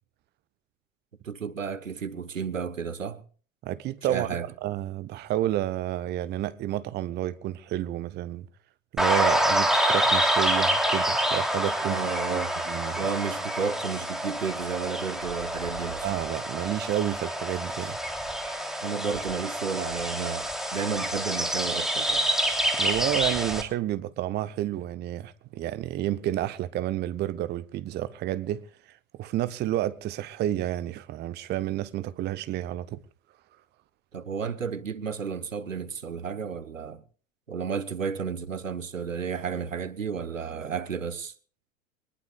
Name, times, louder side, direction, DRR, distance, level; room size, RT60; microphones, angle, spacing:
voice 1, 1.2-3.2 4.0-4.5 11.8-12.5 12.9-16.1 18.8-22.3 34.1-37.0 37.5-41.3, right 6 dB, 75° right, 1.3 m, -32 dB
voice 2, 3.6-4.3 4.6-8.5 8.9-12.0 12.3-13.1 16.0-18.0 22.7-28.7 29.2-33.0, right 13 dB, 25° right, 0.8 m, -30 dB
sound 1, 9.0-23.6, equal, ahead, 3.2 m, -27 dB
24.5 x 20.0 x 2.4 m
figure-of-eight pair, 85°, 39 cm